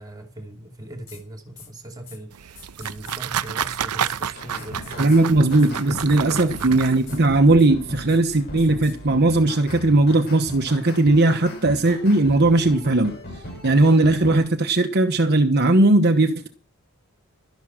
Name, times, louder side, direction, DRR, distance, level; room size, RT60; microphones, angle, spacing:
voice 1, 0.0-5.5 6.3-6.6, right 1 dB, 15° right, 2.9 m, -39 dB
sound 1, 1.1-1.2 1.6-1.7 2.1-2.2 2.6-3.2 3.6-3.7 4.1-4.2 4.6-5.2 5.6-5.7 5.9-6.2 6.6-7.2 7.6-7.7 8.1-8.2 8.6-8.9, left 6 dB, 70° left, 6.2 m, -45 dB
sound 2, 2.3-7.3, right 9 dB, 90° right, 0.6 m, -30 dB
sound 3, 4.3-14.4, left 1 dB, 45° left, 6.4 m, -37 dB
voice 2, 5.0-13.1 13.6-16.5, right 2 dB, 45° right, 1.0 m, -18 dB
12.5 x 11.0 x 6.1 m
head